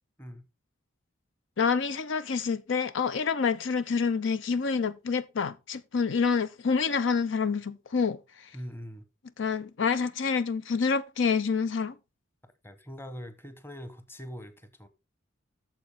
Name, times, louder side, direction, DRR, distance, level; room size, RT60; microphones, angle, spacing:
voice 1, 1.6-8.2 9.4-11.9, left 5 dB, 70° left, 0.6 m, -27 dB
voice 2, 8.5-9.1 12.6-14.9, equal, 10° left, 0.9 m, -42 dB
9.0 x 7.0 x 3.5 m
head